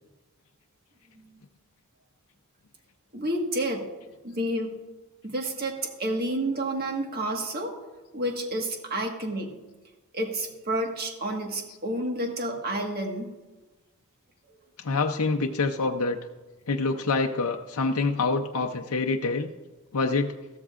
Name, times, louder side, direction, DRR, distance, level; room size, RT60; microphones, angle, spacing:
voice 1, 3.1-3.9 4.2-4.7 5.2-7.7 8.1-9.6 10.1-13.3, right 1 dB, 45° right, 2 dB, 1.6 m, -30 dB
voice 2, 14.8-16.2 16.7-19.5 19.9-20.3, left 3 dB, 70° left, 3 dB, 0.6 m, -26 dB
14.5 x 13.5 x 2.5 m, 1.2 s
head